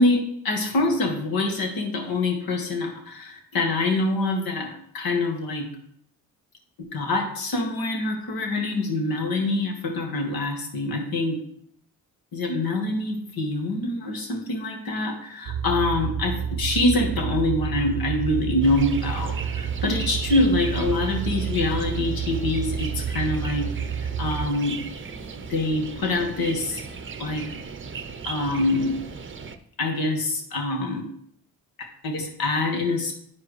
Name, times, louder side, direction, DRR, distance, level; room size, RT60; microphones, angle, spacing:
voice 1, 0.0-5.7 6.8-11.4 12.3-23.7 24.0-24.8 25.5-26.8 27.2-27.5 28.2-29.0 29.8-31.1 31.8-33.1, left 2 dB, 65° left, 2 dB, 1.7 m, -25 dB
sound 1, 15.5-24.5, right 7 dB, 70° right, 0.5 m, -29 dB
sound 2, 18.6-29.6, right 5 dB, 30° right, 0.7 m, -37 dB
10.5 x 4.7 x 3.2 m, 0.68 s
supercardioid pair, 55°, 38 cm